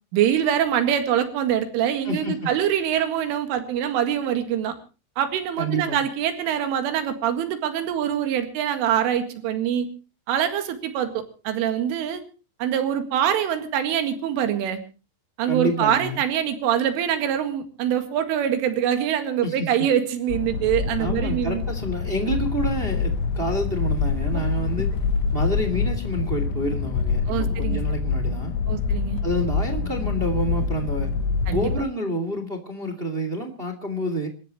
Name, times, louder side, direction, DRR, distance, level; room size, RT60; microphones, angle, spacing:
voice 1, 0.1-4.8 5.2-9.9 10.3-12.2 12.6-14.8 15.4-21.6 27.3-27.8 28.7-29.2 31.5-31.7, right 9 dB, 85° right, 8 dB, 4.5 m, -24 dB
voice 2, 2.0-2.4 5.6-6.0 15.5-16.2 19.4-19.7 21.0-24.9 25.3-28.5 29.2-31.1 31.5-34.3, right 1 dB, 30° right, 7 dB, 1.0 m, -28 dB
sound 1, 20.3-31.8, left 5 dB, 75° left, 2.9 m, -26 dB
27.5 x 14.5 x 3.1 m, 0.35 s
omnidirectional pair, 5.6 m